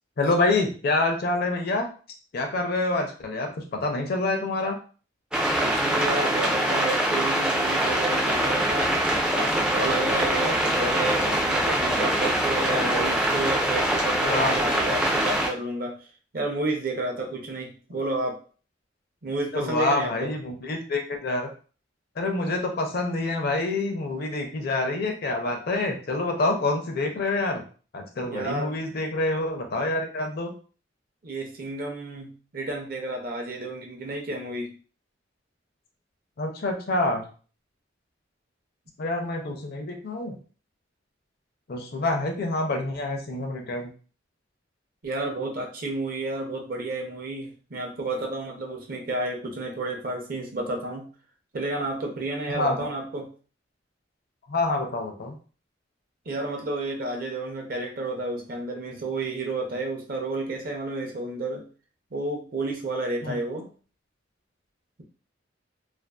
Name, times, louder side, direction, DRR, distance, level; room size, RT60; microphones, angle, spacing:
voice 1, 0.2-1.9 2.3-4.8 12.6-13.2 14.2-14.6 19.5-21.5 22.2-27.6 27.9-30.5 36.4-37.3 39.0-40.4 41.7-43.9 52.5-52.9 54.5-55.4 63.2-63.4, left 2 dB, 55° left, 4 dB, 0.5 m, -27 dB
sound 1, 5.3-15.5, right 1 dB, 5° right, 0.3 m, -24 dB
voice 2, 5.6-9.0 9.3-16.0 16.3-18.4 19.2-20.3 28.2-28.8 31.2-34.7 45.0-51.1 51.5-53.3 56.3-61.6 62.1-63.7, right 2 dB, 50° right, 2 dB, 0.6 m, -31 dB
2.5 x 2.3 x 2.2 m, 0.39 s
head